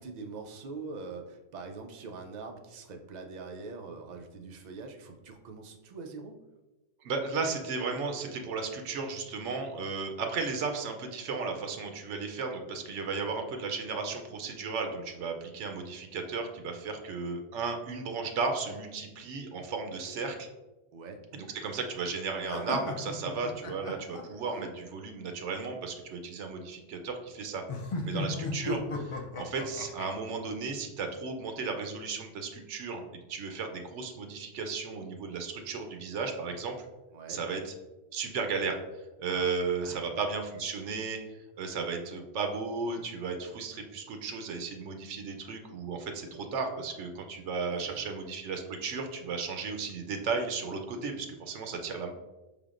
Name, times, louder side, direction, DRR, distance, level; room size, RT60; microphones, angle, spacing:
voice 1, 0.0-6.4 13.2-13.4 20.9-21.2 27.9-28.4 37.1-37.4 39.3-39.5 39.8-40.0 47.7-48.1, right 4 dB, 55° right, 4 dB, 0.5 m, -44 dB
voice 2, 7.0-20.5 21.3-27.6 28.0-36.8 37.3-37.7 38.1-38.8 39.2-52.1, right 4 dB, 80° right, 5 dB, 0.9 m, -35 dB
sound 1, 22.5-24.7 27.7-30.1, left 2 dB, 55° left, 0.3 m, -35 dB
5.4 x 3.4 x 2.4 m, 1.1 s
omnidirectional pair, 1.2 m